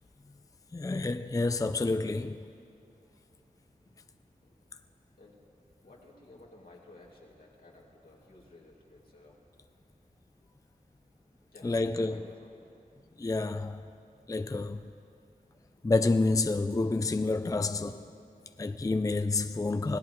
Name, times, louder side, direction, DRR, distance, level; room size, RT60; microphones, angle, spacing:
voice 1, 0.7-2.4 11.6-12.2 13.2-13.8 14.3-14.8 15.8-18.0 18.6-20.0, left 3 dB, 25° left, 0.4 m, -29 dB
voice 2, 5.8-9.4 11.5-12.6 13.1-13.3, left 2 dB, 80° left, 2.6 m, -55 dB
25.0 x 17.0 x 3.1 m
wide cardioid pair, 60°, 15 cm